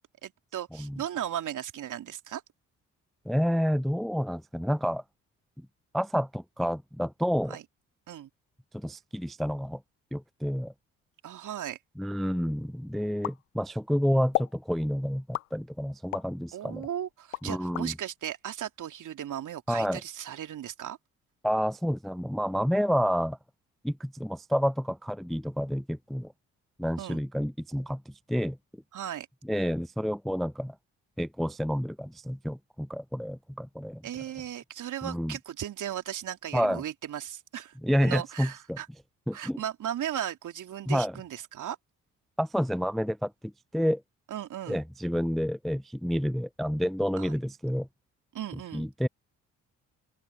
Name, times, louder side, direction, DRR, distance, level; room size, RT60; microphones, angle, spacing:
voice 1, 0.2-2.4 7.5-7.6 8.1-8.3 11.2-11.8 16.5-21.0 27.0-27.2 28.9-29.3 34.0-37.7 38.0-38.9 39.3-41.8 44.3-44.8 47.2-47.3 48.3-48.9, right 10 dB, 50° right, 2.8 m, -36 dB
voice 2, 3.3-5.0 5.9-7.6 8.7-9.8 10.1-10.7 12.0-16.8 17.4-17.9 19.7-20.0 21.4-23.4 23.8-26.3 26.8-28.6 29.5-30.7 31.2-34.0 35.0-35.3 36.5-36.8 37.8-38.8 39.3-39.6 40.9-41.2 42.4-44.0 44.7-47.9 48.7-49.1, equal, ahead, 0.5 m, -29 dB
sound 1, 13.2-13.9 14.3-14.6 15.3-16.3 16.8-17.9, left 17 dB, 80° left, 0.8 m, -33 dB
open air
figure-of-eight pair, 45°, 39 cm